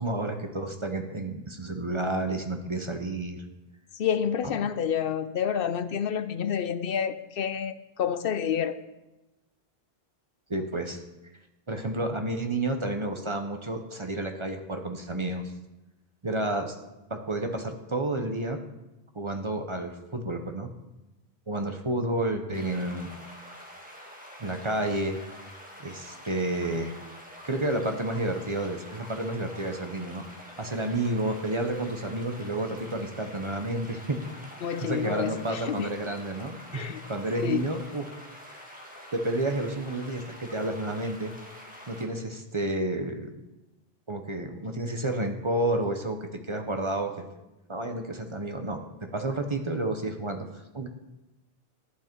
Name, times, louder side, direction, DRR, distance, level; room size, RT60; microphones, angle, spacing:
voice 1, 0.0-3.4 4.4-4.6 10.5-11.0 11.7-15.5 16.2-16.8 17.1-18.6 19.1-20.7 21.5-23.1 24.4-25.2 25.8-26.9 27.4-30.2 30.6-34.2 34.8-38.1 39.1-41.3 41.9-43.3 44.1-47.2 47.7-50.9, right 1 dB, 30° right, 5 dB, 0.8 m, -30 dB
voice 2, 3.9-8.7 34.6-35.9 36.7-37.0 37.4-37.7, left 8 dB, 65° left, 12 dB, 0.7 m, -29 dB
sound 1, 22.5-42.1, equal, 10° right, 1.8 m, -46 dB
11.5 x 9.1 x 4.5 m, 1.0 s
omnidirectional pair, 1.1 m